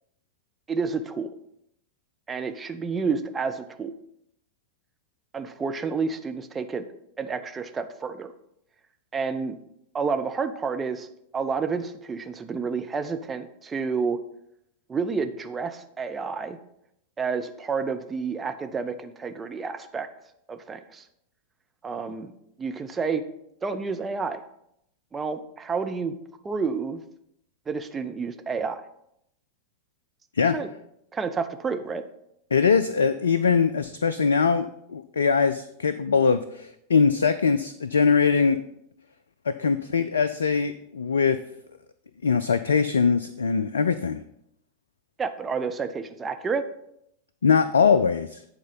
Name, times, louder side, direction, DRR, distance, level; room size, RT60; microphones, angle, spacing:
voice 1, 0.7-1.3 2.3-3.9 5.3-6.8 7.2-8.3 9.1-9.6 9.9-11.1 11.3-14.2 14.9-16.6 17.2-20.1 20.5-21.0 21.8-22.3 22.6-23.2 23.6-24.4 25.1-26.1 26.4-27.0 27.7-28.8 30.5-30.7 31.1-32.0 45.2-46.6, right 5 dB, 15° right, 8 dB, 0.7 m, -29 dB
voice 2, 32.5-38.6 39.5-41.4 42.2-44.2 47.4-48.4, left 5 dB, 70° left, 13 dB, 0.3 m, -22 dB
9.3 x 4.4 x 5.6 m, 0.77 s
figure-of-eight pair, 90°, 0 cm